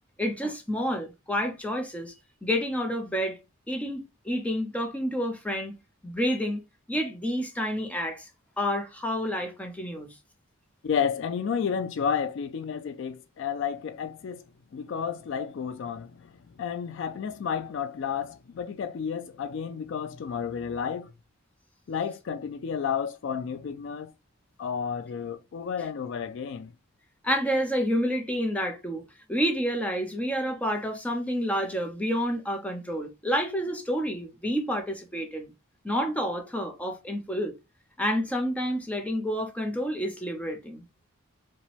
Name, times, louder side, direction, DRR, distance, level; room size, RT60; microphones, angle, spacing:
voice 1, 0.2-2.1 2.4-3.4 3.7-5.8 6.0-6.6 6.9-8.3 8.6-10.1 27.2-29.0 29.3-35.5 35.8-37.5 38.0-40.8, equal, 5° left, 0.6 m, -29 dB
voice 2, 10.8-14.4 14.7-16.3 16.6-21.1 21.9-24.1 24.6-26.7, left 7 dB, 60° left, 0.3 m, -31 dB
5.0 x 2.2 x 3.2 m
head